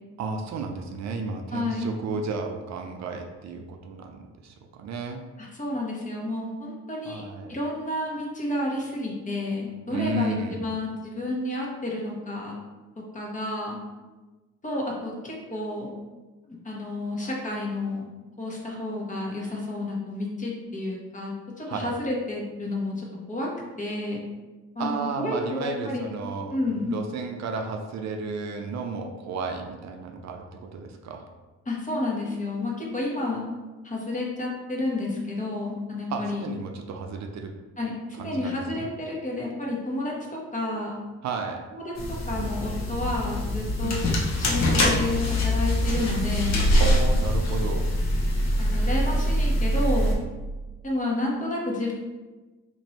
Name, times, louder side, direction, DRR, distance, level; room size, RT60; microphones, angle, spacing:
voice 1, 0.2-5.2 7.1-7.6 9.9-10.6 21.7-21.9 24.8-26.6 26.9-31.2 36.1-37.5 38.2-38.9 41.2-41.6 43.8-44.2 46.8-47.9, right 3 dB, 65° right, 4 dB, 0.5 m, -33 dB
voice 2, 1.5-1.9 5.4-7.2 7.5-12.5 13.1-13.8 14.6-15.9 16.6-18.1 18.4-21.3 21.6-23.5 23.8-24.2 24.7-26.1 26.5-27.0 31.7-33.4 33.8-36.4 37.8-41.0 41.7-43.9 44.4-46.6 48.6-50.1 50.8-51.9, left 2 dB, 25° left, -3 dB, 1.1 m, -30 dB
sound 1, 42.0-50.1, left 1 dB, 60° left, 0.9 m, -24 dB
3.0 x 2.6 x 4.2 m, 1.2 s
cardioid pair, 90°, 30 cm